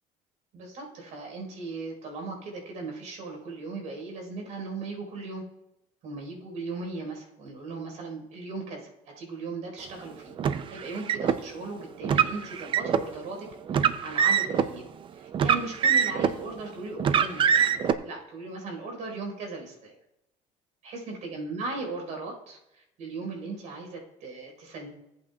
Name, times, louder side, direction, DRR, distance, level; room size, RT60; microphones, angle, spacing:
voice 1, 0.5-5.4 6.0-17.8 18.0-19.9 20.8-24.9, right 3 dB, 60° right, 1 dB, 4.4 m, -38 dB
Car, 10.4-11.4 12.0-13.1 13.7-14.7 15.3-16.4 17.0-17.9, right 7 dB, 35° right, 0.5 m, -23 dB
16.5 x 8.5 x 2.4 m, 0.88 s
cardioid pair, 140°, 14 cm